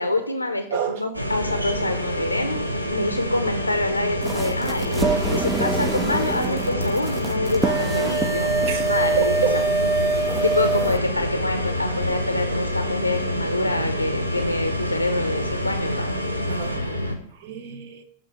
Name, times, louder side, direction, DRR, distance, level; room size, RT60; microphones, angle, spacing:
voice 1, 0.0-8.5 8.8-9.3 10.0-16.1, left 2 dB, 85° left, 7 dB, 0.5 m, -26 dB
voice 2, 0.6-1.1 1.5-1.6 3.0-3.1 4.6-5.4 8.3-9.6 16.5-16.8 17.3-18.0, right 6 dB, 55° right, 9 dB, 0.8 m, -30 dB
sound 1, 1.1-17.2, equal, 85° right, 0.9 m, -27 dB
sound 2, 4.2-11.0, right 3 dB, 10° right, 0.3 m, -25 dB
7.0 x 4.0 x 5.6 m, 0.68 s
figure-of-eight pair, 90°, 0 cm